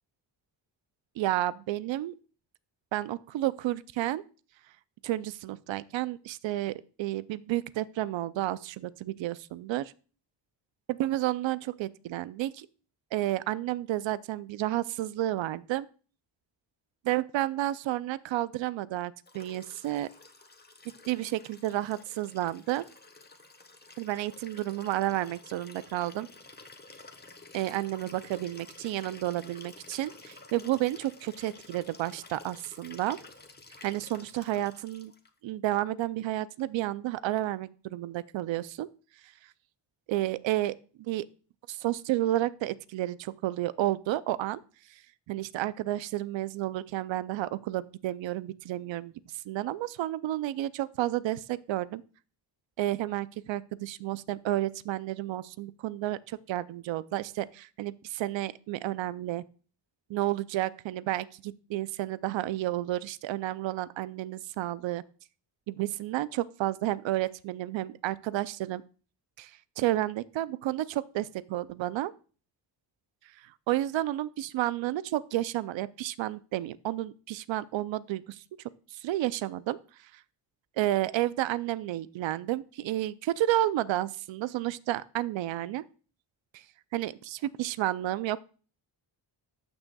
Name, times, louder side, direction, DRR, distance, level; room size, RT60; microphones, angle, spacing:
voice 1, 1.2-2.1 2.9-4.2 5.0-9.9 10.9-12.7 13.1-15.9 17.0-20.1 21.1-22.9 24.0-26.3 27.5-33.2 33.8-35.1 35.4-38.9 40.1-41.3 41.7-44.6 44.9-45.0 45.3-49.1 49.5-52.0 52.8-59.4 60.1-65.0 65.7-68.8 69.4-72.1 73.4-78.4 78.9-80.2 80.8-85.8 86.5-86.6 86.9-88.4, right 15 dB, 90° right, 17 dB, 0.5 m, -31 dB
Liquid, 19.2-35.3 36.6-36.7, left 3 dB, 20° left, 1.0 m, -51 dB
13.5 x 6.2 x 2.3 m, 0.37 s
cardioid pair, 85°, 44 cm